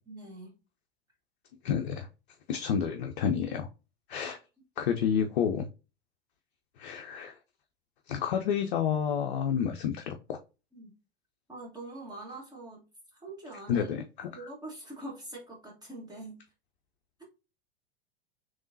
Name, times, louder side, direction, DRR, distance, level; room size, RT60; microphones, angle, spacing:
voice 1, 0.1-0.6 4.2-4.3 10.7-10.9 11.5-12.8 13.1-13.9 14.3-16.4, right 2 dB, 10° right, 1.5 m, -44 dB
voice 2, 1.6-2.1 2.5-3.7 4.1-4.4 4.8-5.7 6.8-7.3 8.1-10.4 13.7-14.5, left 8 dB, 55° left, 0.5 m, -30 dB
3.5 x 3.1 x 2.7 m
figure-of-eight pair, 90°, 31 cm